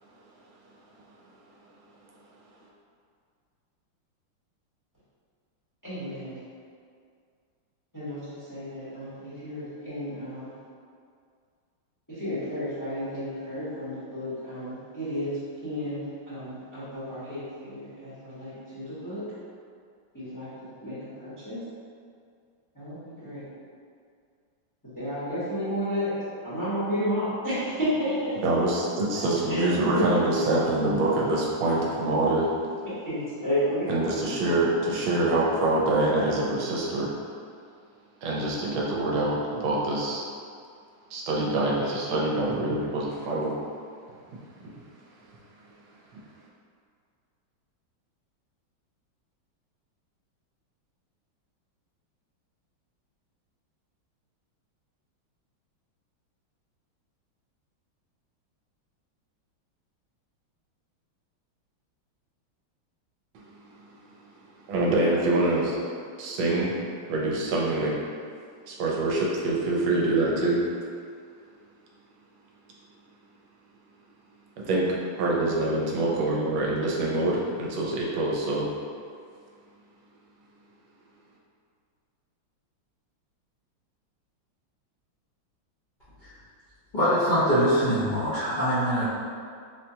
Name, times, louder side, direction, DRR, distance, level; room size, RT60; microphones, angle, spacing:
voice 1, 5.8-6.4 7.9-10.5 12.2-15.3 15.6-19.2 20.1-20.5 20.8-21.6 22.7-22.9 23.2-23.4 24.9-26.1 26.4-28.3 29.5-29.6 33.0-33.8, equal, 15° left, -14 dB, 0.7 m, -32 dB
voice 2, 28.4-32.5 33.9-37.1 38.2-40.2 41.1-43.6 44.6-44.7 63.3-63.4 64.7-65.8 66.2-66.7 67.1-68.0 68.7-70.6 74.6-78.7, right 2 dB, 75° right, -3 dB, 1.3 m, -25 dB
voice 3, 86.9-89.1, equal, 75° left, -15 dB, 0.4 m, -23 dB
4.2 x 2.2 x 2.7 m, 2.2 s
omnidirectional pair, 2.3 m